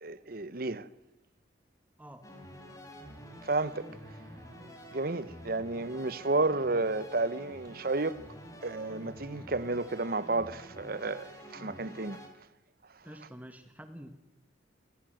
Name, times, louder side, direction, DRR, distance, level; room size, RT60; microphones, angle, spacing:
voice 1, 0.0-0.9 3.4-3.9 4.9-8.2 8.6-12.2, right 3 dB, 50° right, 1.0 m, -31 dB
sound 1, 2.2-12.3, equal, 20° left, 3.8 m, -48 dB
voice 2, 13.0-14.1, equal, 10° right, 1.5 m, -47 dB
28.0 x 18.0 x 7.9 m
head